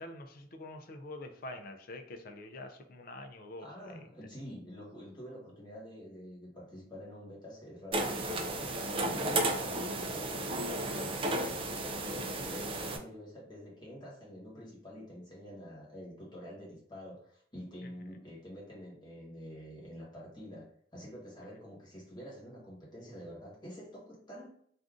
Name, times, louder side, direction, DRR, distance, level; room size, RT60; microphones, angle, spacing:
voice 1, 0.0-4.1 17.8-17.9, left 2 dB, 50° left, 6 dB, 0.4 m, -46 dB
voice 2, 3.6-24.5, equal, 25° left, -5 dB, 1.2 m, -47 dB
sound 1, 7.9-13.0, right 2 dB, 30° right, 0.3 m, -33 dB
2.6 x 2.4 x 3.5 m, 0.63 s
head